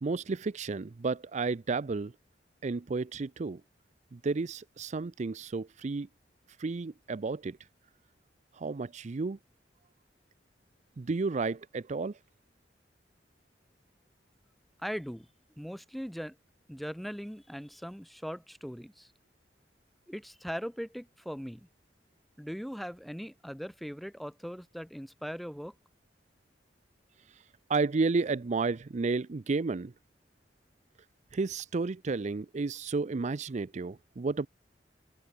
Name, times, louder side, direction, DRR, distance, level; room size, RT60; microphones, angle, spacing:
voice 1, 0.0-2.1 2.6-3.6 4.1-6.1 6.6-7.6 8.5-9.4 11.0-12.2 27.7-29.9 31.3-34.5, right 4 dB, 40° right, 0.5 m, -32 dB
voice 2, 14.8-15.3 15.6-16.4 16.7-19.1 20.1-21.7 22.4-25.7, equal, ahead, 1.0 m, -40 dB
open air
head